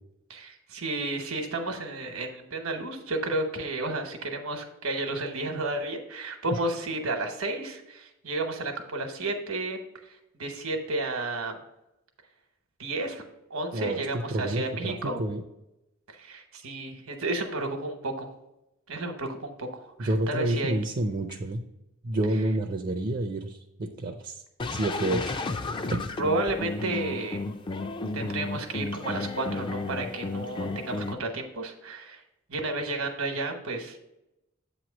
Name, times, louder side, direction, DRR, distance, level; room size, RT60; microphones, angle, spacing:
voice 1, 0.3-9.8 10.4-11.5 12.8-13.2 13.5-15.2 16.2-18.3 18.9-20.7 26.2-27.4 28.1-32.2 32.5-34.0, right 2 dB, 75° right, 5 dB, 1.0 m, -32 dB
voice 2, 14.3-15.4 20.0-21.6 22.0-24.4 24.7-25.4, right 1 dB, 40° right, 3 dB, 0.5 m, -29 dB
sound 1, 24.6-31.1, left 3 dB, 25° left, 0.3 m, -33 dB
8.1 x 3.0 x 6.1 m, 0.89 s
head